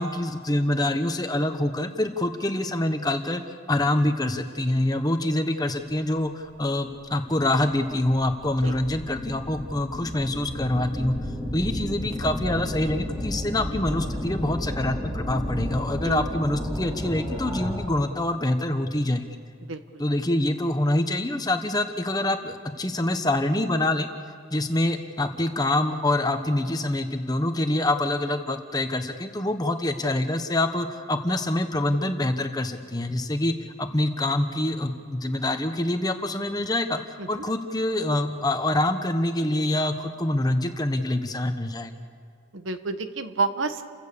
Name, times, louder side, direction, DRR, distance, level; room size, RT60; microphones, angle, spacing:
voice 1, 0.0-3.4 3.7-11.2 11.5-19.4 20.0-24.1 24.5-37.0 37.3-41.9, left 1 dB, 20° left, 7 dB, 1.2 m, -25 dB
sound 1, 8.0-18.0, left 1 dB, 25° right, 6.2 m, -32 dB
voice 2, 42.5-43.8, right 3 dB, 85° right, 9 dB, 1.2 m, -29 dB
29.5 x 15.5 x 6.9 m, 2.2 s
head